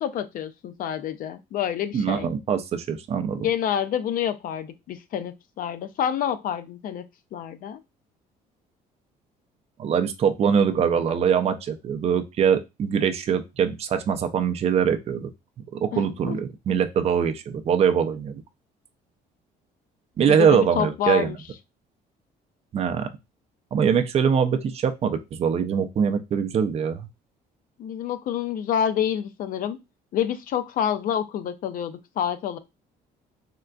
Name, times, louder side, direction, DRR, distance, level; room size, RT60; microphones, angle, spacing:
voice 1, 0.0-2.3 3.4-7.0 7.3-7.8 15.9-16.4 20.3-21.4 27.8-29.8 30.1-32.6, left 9 dB, 55° left, 10 dB, 0.4 m, -28 dB
voice 2, 1.9-3.5 9.8-15.3 15.7-18.4 20.2-21.3 22.7-23.1 23.7-27.1, right 7 dB, 40° right, 8 dB, 0.4 m, -23 dB
3.6 x 2.3 x 2.2 m, 0.23 s
cardioid pair, 110°, 17 cm